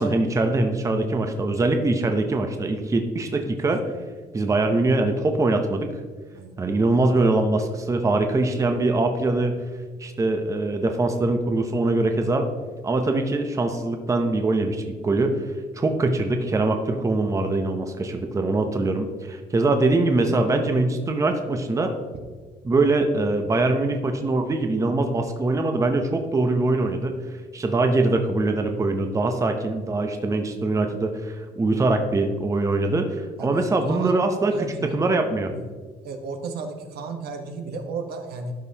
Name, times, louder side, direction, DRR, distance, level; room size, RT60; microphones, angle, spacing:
voice 1, 0.0-3.8 4.3-5.9 6.6-9.5 10.0-12.5 12.8-15.4 15.7-21.9 22.6-27.1 27.5-35.5, right 2 dB, 20° right, 5 dB, 0.7 m, -23 dB
voice 2, 33.4-34.2 34.5-34.9 35.5-35.6 36.0-38.5, right 4 dB, 70° right, 5 dB, 1.1 m, -35 dB
12.5 x 5.3 x 2.8 m, 1.4 s
cardioid pair, 110°, 17 cm